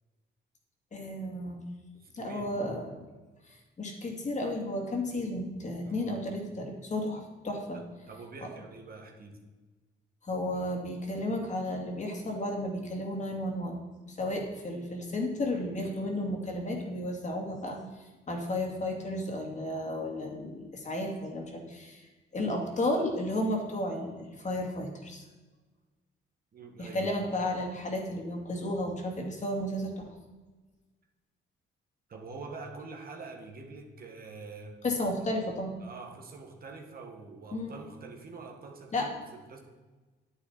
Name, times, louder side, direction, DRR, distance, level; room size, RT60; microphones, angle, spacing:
voice 1, 0.9-1.6 2.1-3.0 3.5-7.8 10.2-13.8 14.1-22.1 22.3-25.2 26.8-29.9 34.8-35.8 37.5-37.7 38.9-39.1, left 1 dB, 35° left, 1 dB, 2.4 m, -33 dB
voice 2, 1.9-2.5 5.8-6.2 7.7-9.4 26.5-27.0 32.1-34.8 35.8-39.6, right 4 dB, 50° right, 2 dB, 1.8 m, -45 dB
9.7 x 9.0 x 4.3 m, 1.3 s
cardioid pair, 90°, 20 cm